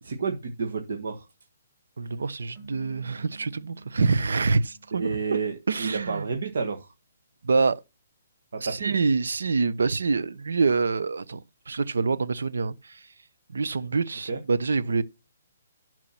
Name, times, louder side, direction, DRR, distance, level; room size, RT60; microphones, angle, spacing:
voice 1, 0.0-1.2 4.9-6.9 8.5-8.9 14.3-14.4, right 5 dB, 55° right, 1.4 m, -30 dB
voice 2, 2.0-5.2 5.7-6.3 7.4-7.8 8.6-13.0 13.5-15.0, right 4 dB, 80° right, 0.9 m, -26 dB
sound 1, 2.5-5.9, right 2 dB, ahead, 2.2 m, -51 dB
11.5 x 4.7 x 5.7 m
hypercardioid pair, 180°, 0 cm